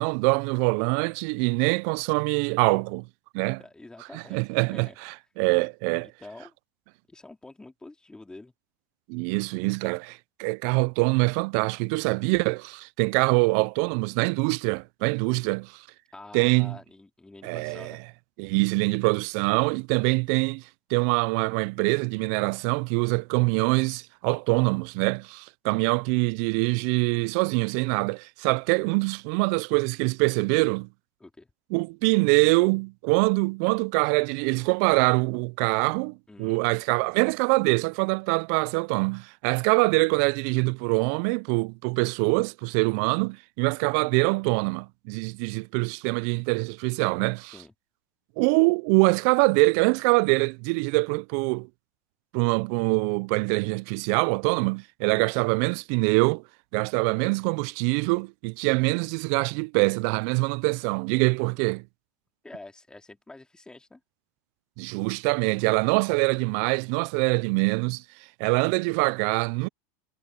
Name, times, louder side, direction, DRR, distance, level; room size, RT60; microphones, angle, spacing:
voice 1, 0.0-3.1 3.3-3.6 4.1-6.1 9.1-15.8 16.3-16.8 17.4-17.9 18.4-20.6 20.9-30.9 31.7-47.5 48.4-51.7 52.3-56.4 56.7-61.8 64.8-68.0 68.4-69.7, right 31 dB, 60° right, 0.4 m, -24 dB
voice 2, 3.6-4.4 4.7-5.0 6.2-6.5 7.1-8.5 16.1-18.0 31.2-31.5 36.3-36.6 47.5-47.7 55.0-55.3 62.4-64.0, left 2 dB, 10° left, 3.4 m, -47 dB
hypercardioid pair, 110°, 10 cm